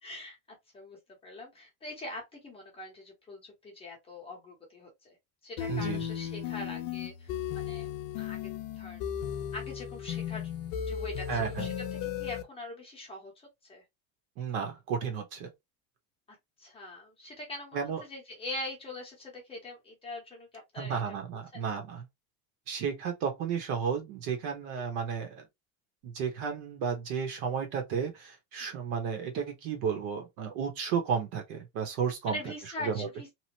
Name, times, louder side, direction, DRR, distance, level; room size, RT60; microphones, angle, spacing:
voice 1, 0.0-0.4 0.7-5.2 5.4-9.1 9.5-10.5 10.9-11.7 12.2-13.8 16.6-20.5 20.7-21.2 21.5-21.7 28.6-28.8 32.3-33.3, left 1 dB, 15° left, 0.8 m, -43 dB
sound 1, 5.6-12.4, left 9 dB, 55° left, 0.6 m, -35 dB
voice 2, 5.7-6.0 11.3-11.7 14.4-15.5 17.7-18.0 20.8-22.0 22.7-25.5 26.0-32.5 32.8-33.1, right 6 dB, 60° right, 1.1 m, -33 dB
3.0 x 2.1 x 2.9 m
cardioid pair, 175°, 40 cm